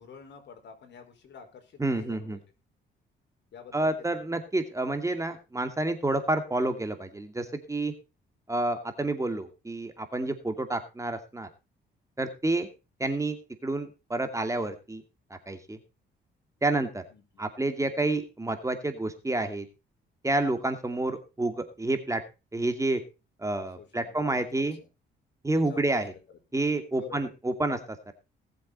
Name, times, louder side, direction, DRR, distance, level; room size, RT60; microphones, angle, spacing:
voice 1, 0.0-2.4 3.5-4.2 17.1-17.5 23.8-24.9 25.5-26.0 27.0-27.3, left 7 dB, 65° left, 5 dB, 5.0 m, -48 dB
voice 2, 1.8-2.4 3.7-7.9 8.5-11.5 12.2-12.7 13.0-13.4 13.6-15.0 15.5-15.8 16.6-17.0 17.4-19.7 20.2-22.2 22.5-23.0 23.4-24.8 25.4-26.1 26.5-28.1, right 2 dB, 15° right, 7 dB, 2.5 m, -29 dB
19.5 x 7.8 x 4.2 m, 0.30 s
cardioid pair, 90°, 20 cm